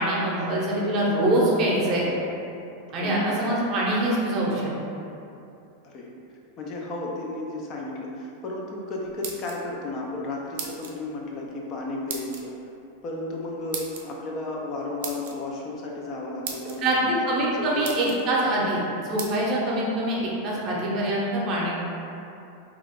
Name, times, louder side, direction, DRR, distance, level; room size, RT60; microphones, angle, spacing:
voice 1, 0.0-2.1 2.9-4.7 16.8-21.7, right 1 dB, 35° right, -4 dB, 0.7 m, -24 dB
voice 2, 2.9-3.3 5.8-6.1 6.6-12.5 13.0-17.2 17.6-18.2, left 2 dB, 35° left, -2 dB, 0.4 m, -33 dB
sound 1, 9.0-9.9 10.6-11.0 12.1-12.4 13.7-14.0 15.0-15.4 16.1-16.2 16.4-16.8 17.4-17.5 17.8-18.2 19.2-19.3, right 6 dB, 70° right, 0.5 m, -35 dB
2.8 x 2.4 x 3.5 m, 2.7 s
supercardioid pair, 150°, 0 cm